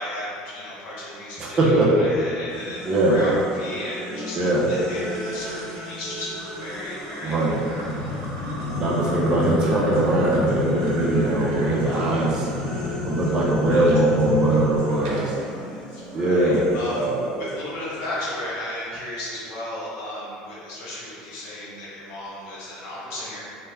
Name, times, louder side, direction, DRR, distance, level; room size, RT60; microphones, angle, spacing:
voice 1, 0.0-4.4 4.7-8.2 13.7-14.0 14.9-17.1 17.4-23.4, left 1 dB, 65° left, -7 dB, 1.1 m, -35 dB
voice 2, 1.4-2.0 2.8-3.2 4.3-4.7 7.2-7.6 8.7-15.3 16.1-17.3, right 1 dB, 25° right, -4 dB, 0.5 m, -21 dB
sound 1, 2.5-9.6 9.9-18.5, equal, 30° left, 1.0 m, -37 dB
sound 2, 4.8-14.0 14.5-15.5, right 1 dB, 75° right, 0.7 m, -40 dB
sound 3, 7.7-14.8, left 1 dB, 85° left, 0.4 m, -28 dB
3.4 x 2.1 x 3.3 m, 2.5 s
cardioid pair, 165°, 3 cm